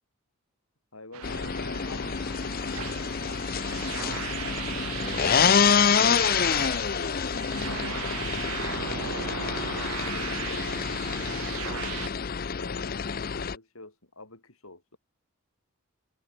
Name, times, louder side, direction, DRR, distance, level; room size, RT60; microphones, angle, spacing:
voice 1, 0.9-2.2 3.3-3.4 7.7-9.3 10.1-10.8 12.2-15.0, left 3 dB, 80° left, 7.1 m, -47 dB
sound 1, 1.1-12.1, right 11 dB, 75° right, 0.4 m, -37 dB
sound 2, 1.2-13.6, left 6 dB, 45° left, 0.5 m, -27 dB
voice 2, 4.1-4.5 5.0-6.8 10.6-10.9, equal, 5° left, 1.0 m, -45 dB
head